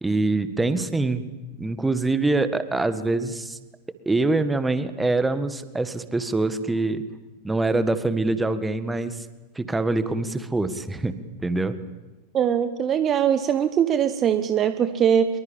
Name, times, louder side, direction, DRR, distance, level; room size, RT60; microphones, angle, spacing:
voice 1, 0.0-1.2 1.6-3.6 4.1-7.0 7.4-9.3 9.6-11.8, right 2 dB, 10° right, 12 dB, 1.7 m, -24 dB
voice 2, 12.3-15.4, right 9 dB, 30° right, 11 dB, 1.2 m, -21 dB
25.0 x 23.0 x 8.9 m, 1.2 s
figure-of-eight pair, 90°, 0 cm